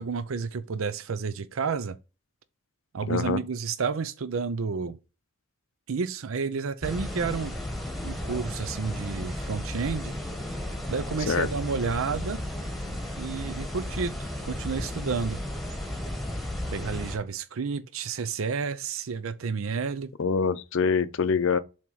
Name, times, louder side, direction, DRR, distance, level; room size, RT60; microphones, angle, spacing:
voice 1, 0.0-2.0 2.9-5.0 5.9-7.6 8.0-10.2 10.9-12.4 13.2-15.4 16.7-20.1, right 5 dB, 80° right, 0.5 m, -31 dB
voice 2, 3.1-3.4 11.3-11.5 20.2-21.6, left 5 dB, 65° left, 0.6 m, -25 dB
sound 1, 6.8-17.2, left 1 dB, ahead, 1.2 m, -34 dB
7.2 x 2.9 x 4.6 m
head